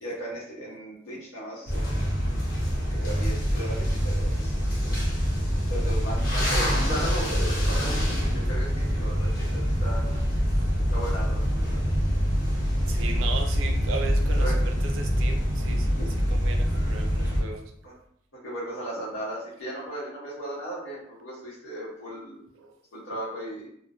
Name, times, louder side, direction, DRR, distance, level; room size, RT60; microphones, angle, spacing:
voice 1, 0.0-2.2 2.9-4.6 5.7-10.2 10.9-11.8 14.3-14.5 16.0-16.3 17.8-17.9 18.4-22.4 22.9-23.7, right 1 dB, 80° left, -8 dB, 0.7 m, -37 dB
sound 1, 1.7-17.4, equal, 45° left, 0.6 m, -25 dB
voice 2, 12.5-15.9 16.3-17.6 22.6-22.7, right 4 dB, 80° right, 4 dB, 0.4 m, -37 dB
2.3 x 2.0 x 2.7 m, 0.70 s
head